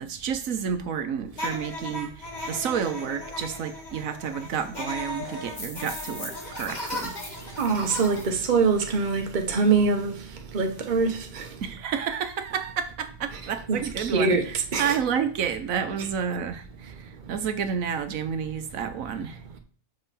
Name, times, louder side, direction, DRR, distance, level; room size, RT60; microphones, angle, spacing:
voice 1, 0.0-7.2 11.6-16.9 17.3-19.4, right 7 dB, 75° right, 1.2 m, -30 dB
sound 1, 1.3-8.2, left 1 dB, 30° left, 1.7 m, -36 dB
voice 2, 7.6-10.2 10.5-11.5 13.3-13.4 13.7-15.0, right 4 dB, 35° right, 1.1 m, -24 dB
6.4 x 5.8 x 4.1 m
omnidirectional pair, 1.5 m